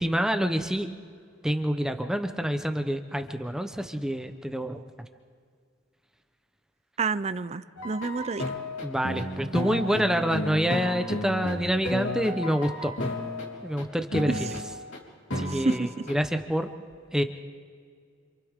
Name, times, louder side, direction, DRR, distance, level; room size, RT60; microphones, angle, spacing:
voice 1, 0.0-0.9 1.4-4.8 8.8-12.9 13.6-14.5 15.4-16.7 17.1-17.2, equal, 5° right, 6 dB, 0.9 m, -27 dB
voice 2, 7.0-8.4 14.3-14.5 15.5-15.9, right 4 dB, 35° right, 14 dB, 0.5 m, -29 dB
sound 1, 7.8-13.8 14.1-15.0 15.3-16.1, left 1 dB, 85° left, 3.5 m, -33 dB
29.5 x 27.0 x 3.7 m, 2.1 s
head